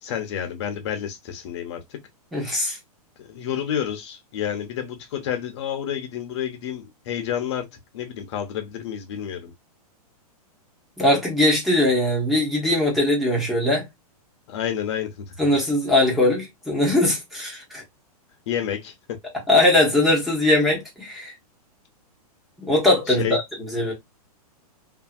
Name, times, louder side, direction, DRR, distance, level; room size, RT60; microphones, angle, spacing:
voice 1, 0.0-1.8 3.2-7.7 7.9-9.5 14.5-15.3 18.5-18.9 23.1-23.4, left 9 dB, 45° left, 0.8 m, -29 dB
voice 2, 2.3-2.8 11.0-13.9 15.4-17.8 19.5-21.3 22.6-23.9, left 1 dB, ahead, 0.9 m, -20 dB
2.7 x 2.7 x 2.4 m
hypercardioid pair, 165°, 20 cm